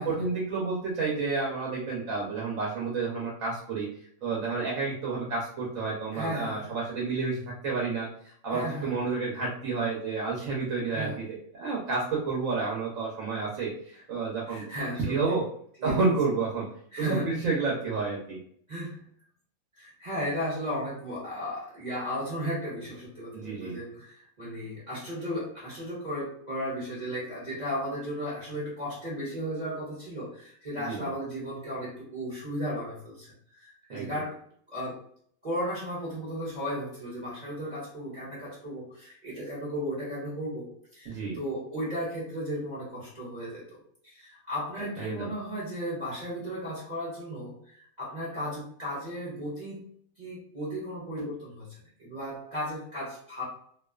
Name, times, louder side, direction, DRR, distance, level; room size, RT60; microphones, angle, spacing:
voice 1, 0.0-3.8 4.2-14.6 15.0-15.4 15.8-16.7 17.0-18.4 23.3-23.7 30.9-31.1 33.9-34.2 41.1-41.4 45.0-45.3, right 4 dB, 70° right, -3 dB, 1.0 m, -30 dB
voice 2, 6.1-6.7 8.5-8.9 10.9-11.2 13.9-14.0 14.5-15.4 15.8-16.1 16.9-17.3 18.7-19.0 19.7-34.4 34.7-35.0 35.4-49.8 50.2-53.4, equal, 35° right, -8 dB, 0.8 m, -35 dB
2.4 x 2.3 x 2.2 m, 0.62 s
omnidirectional pair, 1.5 m